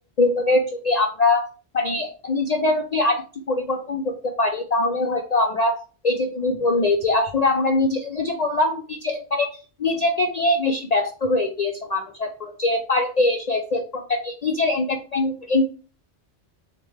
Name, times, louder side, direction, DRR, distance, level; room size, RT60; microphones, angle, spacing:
voice 1, 0.2-1.5 1.7-3.2 3.5-9.5 9.8-15.6, left 2 dB, 55° left, 3 dB, 0.5 m, -22 dB
6.5 x 2.2 x 3.2 m, 0.36 s
omnidirectional pair, 1.2 m